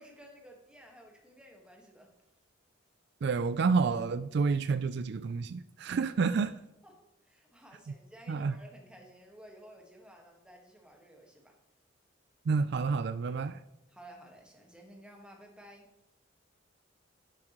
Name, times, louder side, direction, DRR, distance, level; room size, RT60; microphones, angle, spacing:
voice 1, 0.0-2.1 6.8-11.6 13.9-15.9, right 1 dB, 5° right, 0 dB, 1.6 m, -54 dB
voice 2, 3.2-6.6 8.3-8.6 12.5-13.6, right 4 dB, 55° right, 12 dB, 0.3 m, -29 dB
11.5 x 7.2 x 3.1 m, 0.89 s
head